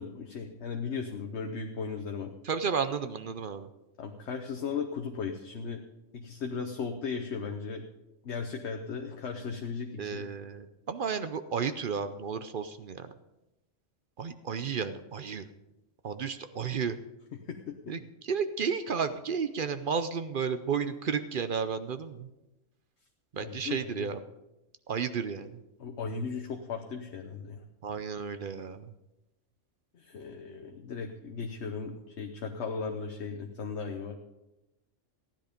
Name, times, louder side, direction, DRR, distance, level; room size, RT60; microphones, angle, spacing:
voice 1, 0.0-2.3 4.0-5.8 6.1-7.8 8.2-10.2 17.3-17.9 23.4-24.1 25.8-27.6 29.9-34.2, left 5 dB, 65° left, 4 dB, 1.2 m, -36 dB
voice 2, 2.4-3.7 10.0-13.1 14.2-15.5 16.0-17.0 17.9-22.3 23.3-24.2 24.9-25.5 27.8-28.9, right 6 dB, 55° right, 11 dB, 0.7 m, -32 dB
15.0 x 10.5 x 5.1 m, 0.97 s
omnidirectional pair, 1.3 m